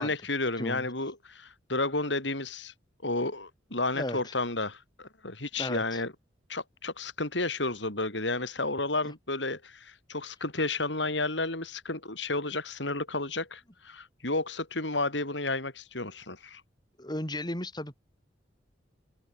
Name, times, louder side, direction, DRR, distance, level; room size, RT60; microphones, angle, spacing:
voice 1, 0.0-2.7 3.0-6.1 6.5-16.6, left 2 dB, 75° left, 6.7 m, -32 dB
voice 2, 3.9-4.3 5.6-6.0 9.0-9.1 17.0-18.0, left 1 dB, 25° left, 5.0 m, -35 dB
open air
head